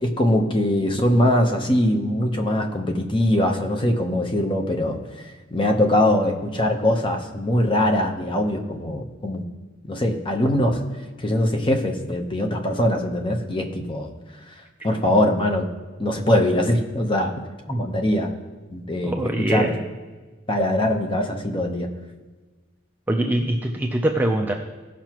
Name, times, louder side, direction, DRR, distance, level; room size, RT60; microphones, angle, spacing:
voice 1, 0.0-5.0 5.5-9.4 9.9-10.8 11.2-14.1 14.8-15.7 16.0-17.3 17.8-18.3 18.7-19.1 19.5-19.7 20.5-21.9, left 1 dB, 25° left, 4 dB, 0.9 m, -22 dB
voice 2, 19.0-19.9 23.1-24.5, right 1 dB, 10° right, 0 dB, 0.5 m, -23 dB
17.0 x 5.9 x 3.0 m, 1.3 s
head